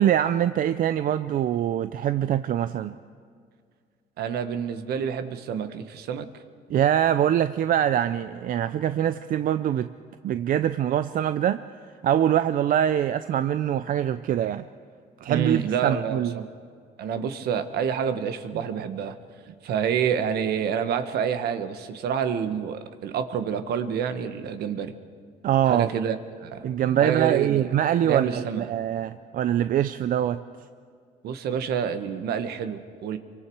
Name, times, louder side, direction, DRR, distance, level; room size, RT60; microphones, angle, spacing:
voice 1, 0.0-3.0 6.7-9.9 10.2-11.6 12.0-14.6 15.2-16.4 25.4-25.9 26.6-30.4, right 10 dB, 55° right, 11 dB, 0.6 m, -23 dB
voice 2, 4.2-6.3 15.3-16.5 17.0-19.2 19.6-24.9 25.7-26.2 26.4-26.7 27.0-27.7 28.0-28.7 31.2-33.2, right 7 dB, 70° right, 9 dB, 1.4 m, -28 dB
27.5 x 24.0 x 4.7 m, 2.1 s
cardioid pair, 110°, 17 cm